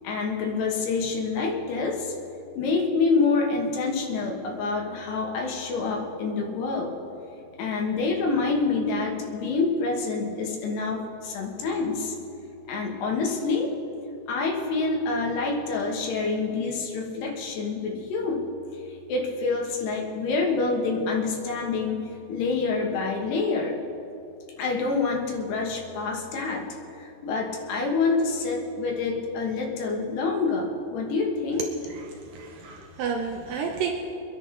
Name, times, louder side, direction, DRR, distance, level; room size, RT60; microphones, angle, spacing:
voice 1, 0.0-2.1 2.6-6.9 7.6-12.1 12.7-13.7 14.3-18.5 18.9-23.8 24.6-26.7 27.0-31.6 33.4-33.7, left 4 dB, 70° left, 0 dB, 3.4 m, -27 dB
voice 2, 32.3-33.9, right 6 dB, 90° right, 1 dB, 1.9 m, -30 dB
25.0 x 10.5 x 3.9 m, 2.7 s
omnidirectional pair, 5.2 m